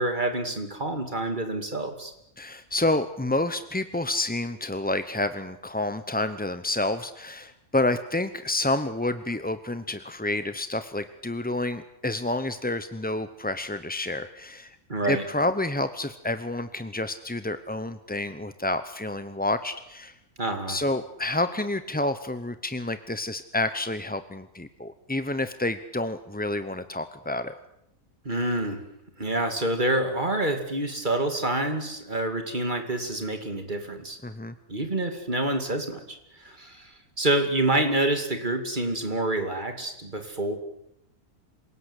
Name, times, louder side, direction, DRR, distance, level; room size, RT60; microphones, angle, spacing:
voice 1, 0.0-2.1 14.9-15.3 20.4-20.8 28.2-28.9 29.2-34.2 34.7-40.6, right 1 dB, 30° right, 6 dB, 2.7 m, -27 dB
voice 2, 2.4-14.8 15.0-20.1 20.7-27.5 34.2-34.5, left 2 dB, 10° left, 11 dB, 0.5 m, -29 dB
27.0 x 18.0 x 8.1 m, 0.80 s
omnidirectional pair, 1.6 m